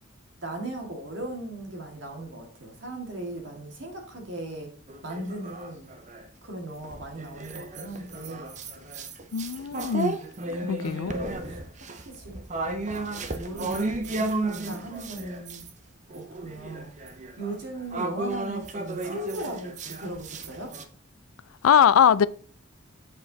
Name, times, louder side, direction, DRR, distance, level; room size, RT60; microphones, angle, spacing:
voice 1, 0.4-4.7 5.0-5.9 6.4-8.6 10.6-12.9 13.2-15.6 16.1-16.9 17.4-20.7, right 1 dB, 60° right, 2.0 m, -38 dB
sound 1, 4.9-6.3 6.8-15.7 16.1-20.8, right 2 dB, 35° right, 0.6 m, -34 dB
voice 2, 9.3-10.2 10.7-11.2 21.6-22.3, left 8 dB, 85° left, 0.4 m, -21 dB
7.7 x 4.8 x 4.0 m
head